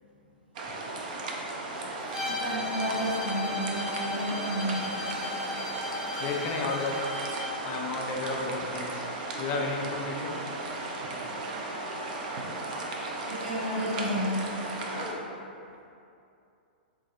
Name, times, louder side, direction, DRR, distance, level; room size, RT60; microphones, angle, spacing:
sound 1, 0.5-15.1, right 2 dB, 50° right, 0.4 m, -36 dB
Bowed string instrument, 2.1-7.6, left 2 dB, 5° right, 0.6 m, -36 dB
voice 1, 2.2-5.0 13.2-14.7, equal, 80° right, -10 dB, 1.4 m, -32 dB
voice 2, 6.2-7.0 7.6-9.1 9.4-10.5 14.9-15.3, left 3 dB, 35° left, 1 dB, 0.4 m, -33 dB
3.8 x 2.5 x 2.5 m, 2.6 s
figure-of-eight pair, 105°, 5 cm